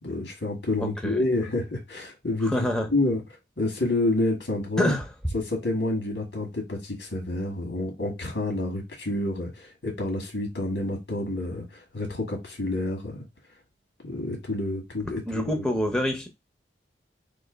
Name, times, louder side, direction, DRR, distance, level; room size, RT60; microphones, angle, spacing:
voice 1, 0.0-2.6 2.9-3.2 3.6-4.9 5.3-13.2 14.0-15.6, left 2 dB, 90° left, 1.6 m, -28 dB
voice 2, 0.8-1.2 2.4-2.9 4.8-5.1 15.3-16.3, equal, 5° left, 0.6 m, -26 dB
3.1 x 2.7 x 3.9 m
head